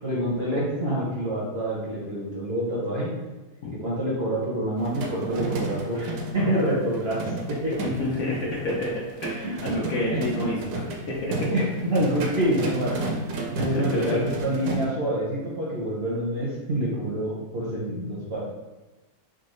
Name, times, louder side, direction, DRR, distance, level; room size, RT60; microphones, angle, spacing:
voice 1, 0.0-3.1 3.7-7.8 9.4-9.5 10.1-11.0 11.5-12.9 13.5-18.4, right 1 dB, 55° right, -6 dB, 0.7 m, -27 dB
sound 1, 4.8-14.9, right 3 dB, 75° right, 1.1 m, -32 dB
voice 2, 7.8-11.5 13.6-14.2, left 2 dB, 70° left, -4 dB, 1.0 m, -29 dB
3.7 x 2.3 x 3.0 m, 1.1 s
omnidirectional pair, 1.7 m